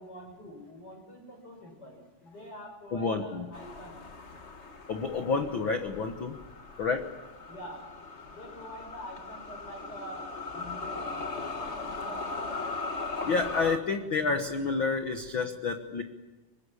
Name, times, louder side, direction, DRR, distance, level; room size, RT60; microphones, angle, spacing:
voice 1, 0.0-4.0 7.5-7.9 8.3-12.3, equal, 25° left, 2 dB, 6.8 m, -46 dB
voice 2, 2.9-3.5 4.9-6.4 6.8-7.1 10.6-10.8 13.2-16.0, left 4 dB, 55° left, 6 dB, 1.4 m, -29 dB
sound 1, 3.5-13.8, left 3 dB, 75° left, 0.6 m, -39 dB
25.5 x 21.0 x 9.9 m, 1.2 s
omnidirectional pair, 4.1 m